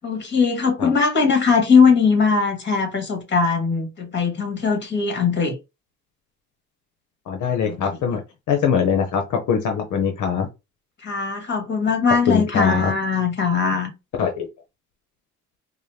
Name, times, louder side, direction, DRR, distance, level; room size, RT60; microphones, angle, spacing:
voice 1, 0.0-5.6 7.6-7.8 11.0-13.9, left 5 dB, 35° left, 1.7 m, -20 dB
voice 2, 7.3-8.2 8.5-10.5 12.3-12.9 14.2-14.5, left 6 dB, 75° left, 0.8 m, -22 dB
4.8 x 2.1 x 2.8 m
cardioid pair, 90°, 30 cm